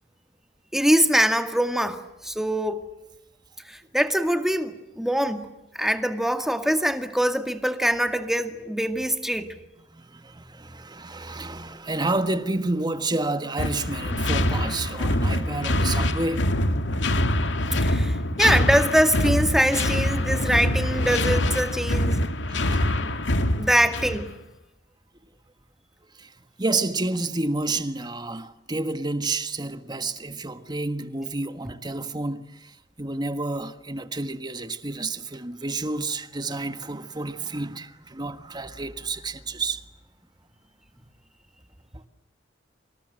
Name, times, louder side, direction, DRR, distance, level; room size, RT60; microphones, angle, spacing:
voice 1, 0.7-2.9 3.7-9.5 17.8-22.2 23.6-24.3, equal, ahead, 2.1 m, -23 dB
voice 2, 9.9-16.5 20.4-20.5 22.5-22.8 26.2-26.3 26.6-39.8 41.9-42.0, right 2 dB, 25° right, 1.5 m, -30 dB
sound 1, 13.6-24.3, left 1 dB, 75° left, 2.3 m, -24 dB
28.0 x 26.5 x 7.7 m
head